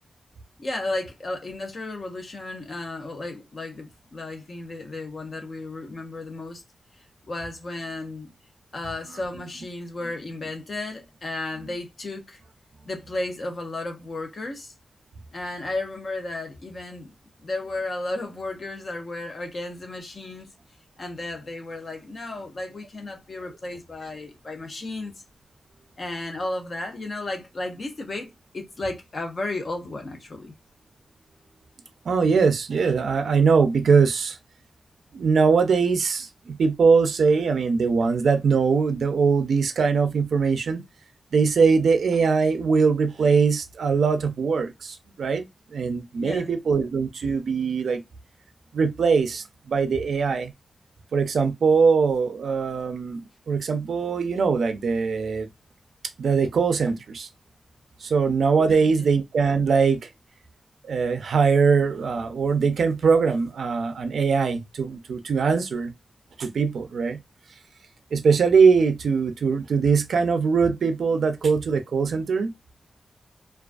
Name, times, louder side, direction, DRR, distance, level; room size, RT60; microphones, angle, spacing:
voice 1, 0.6-6.6 7.3-8.3 8.7-12.4 12.9-14.7 15.3-17.1 17.4-20.5 21.0-25.1 26.0-30.5 46.2-46.5 58.7-59.1, left 2 dB, 40° left, 0.5 m, -33 dB
voice 2, 32.1-34.4 35.1-40.8 41.3-45.4 45.7-48.0 48.7-50.5 51.1-55.5 56.2-57.3 58.0-60.1 60.9-65.9 66.4-67.2 68.1-72.5, right 5 dB, 85° right, 0.3 m, -21 dB
2.3 x 2.2 x 2.4 m
wide cardioid pair, 175°, 0 cm